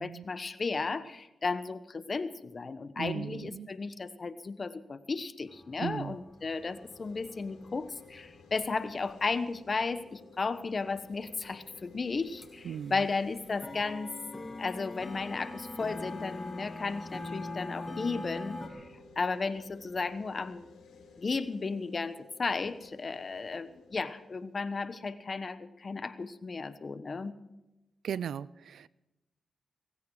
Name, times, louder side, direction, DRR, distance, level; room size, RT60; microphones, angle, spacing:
voice 1, 0.0-14.1 14.6-18.9 19.2-20.7 21.2-27.4, left 4 dB, 50° left, 13 dB, 1.2 m, -34 dB
voice 2, 3.0-3.7 5.8-6.2 12.6-13.1 28.0-28.9, right 8 dB, 80° right, 21 dB, 0.5 m, -37 dB
sound 1, 5.5-11.4 11.8-11.9 12.2-12.5 12.8-18.7, left 2 dB, 25° left, 3.3 m, -43 dB
sound 2, 6.3-25.4, left 3 dB, 90° left, 4.8 m, -56 dB
17.5 x 16.0 x 4.9 m, 0.97 s
cardioid pair, 55°, 0 cm